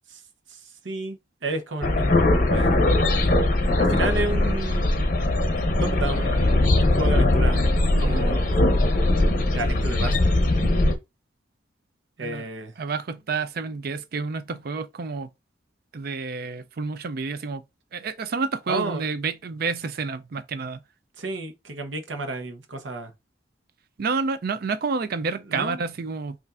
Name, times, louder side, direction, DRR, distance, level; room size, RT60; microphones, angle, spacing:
voice 1, 0.8-2.8 3.8-4.9 5.8-7.7 8.0-8.7 9.5-10.1 12.2-12.7 18.7-19.0 21.2-23.1 25.5-25.8, right 2 dB, 90° right, 0.8 m, -31 dB
sound 1, 1.8-10.9, left 1 dB, 45° left, 0.7 m, -20 dB
voice 2, 12.8-15.3 15.9-17.6 17.9-20.8 24.0-26.4, right 4 dB, 55° right, 0.4 m, -29 dB
5.5 x 2.5 x 2.5 m
head